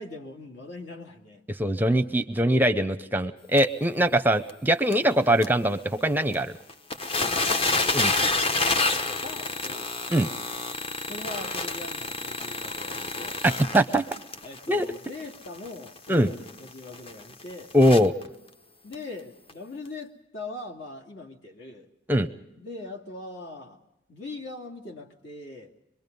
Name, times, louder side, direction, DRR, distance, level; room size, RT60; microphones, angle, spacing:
voice 1, 0.0-1.4 7.2-7.7 8.7-9.9 11.1-13.4 14.4-17.7 18.8-21.9 22.5-23.8 24.1-25.7, left 2 dB, 65° left, 2 dB, 2.5 m, -41 dB
voice 2, 1.6-6.5 7.9-8.1 10.1-10.3 13.4-14.1 14.7-14.9 16.1-16.3 17.7-18.1 22.1-22.3, right 1 dB, 10° right, 11 dB, 0.7 m, -22 dB
sound 1, 3.6-3.7 4.1-4.2 4.5-4.6 4.9-5.0 5.4-5.5 6.3-6.4 6.7-18.3 18.9-19.0 19.5-19.6, left 3 dB, 30° left, 0.8 m, -29 dB
24.5 x 22.0 x 5.3 m, 0.86 s
head